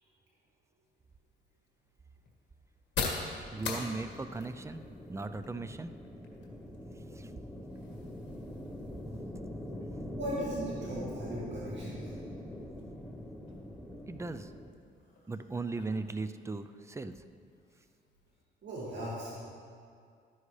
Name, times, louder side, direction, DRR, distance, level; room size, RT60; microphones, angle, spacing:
sound 1, 0.8-18.4, left 4 dB, 60° left, 1.8 m, -46 dB
sound 2, 3.5-14.7, left 1 dB, 5° left, 1.0 m, -43 dB
voice 1, 3.5-4.8 5.1-5.9 7.1-7.3 14.1-14.5 15.3-17.2, right 3 dB, 15° right, 11 dB, 0.4 m, -38 dB
voice 2, 10.1-12.2 18.6-19.4, right 1 dB, 65° right, -6 dB, 2.2 m, -38 dB
13.0 x 9.9 x 3.3 m, 2.3 s
cardioid pair, 90°, 20 cm